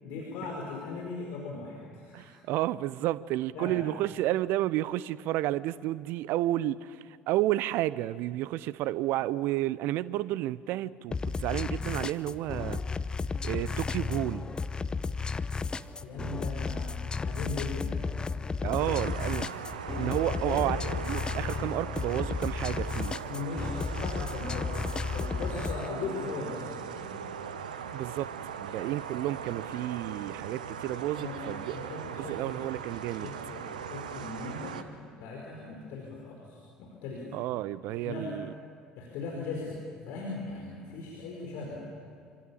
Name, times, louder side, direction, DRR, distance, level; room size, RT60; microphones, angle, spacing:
voice 1, 0.0-2.3 3.5-3.8 16.0-18.1 18.6-19.1 20.2-20.6 23.2-24.7 25.1-27.2 31.1-31.4 31.7-32.6 33.1-34.8 35.2-37.2 37.9-38.3 38.9-41.8, left 3 dB, 55° left, -2 dB, 5.0 m, -39 dB
voice 2, 2.1-12.8 13.4-14.5 18.6-19.5 20.0-23.2 27.9-28.3 28.6-33.3 37.3-38.5, right 15 dB, 55° right, 19 dB, 0.7 m, -31 dB
sound 1, 11.1-25.9, left 4 dB, 20° left, 0.8 m, -33 dB
sound 2, 18.8-34.8, right 7 dB, 75° right, 1.1 m, -39 dB
26.5 x 26.0 x 7.4 m, 2.2 s
figure-of-eight pair, 60°, 4 cm